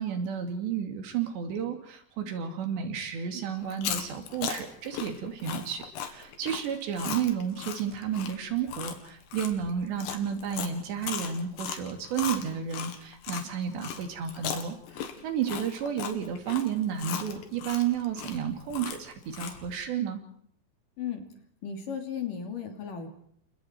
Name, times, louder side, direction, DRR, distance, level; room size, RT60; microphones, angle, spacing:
voice 1, 0.0-20.2, right 8 dB, 80° right, 6 dB, 4.9 m, -32 dB
Chewing mastication, 3.6-13.5 13.8-19.7, left 8 dB, 80° left, 4.3 m, -37 dB
voice 2, 21.6-23.1, left 7 dB, 55° left, 4 dB, 4.3 m, -35 dB
30.0 x 26.0 x 4.6 m, 0.66 s
omnidirectional pair, 4.9 m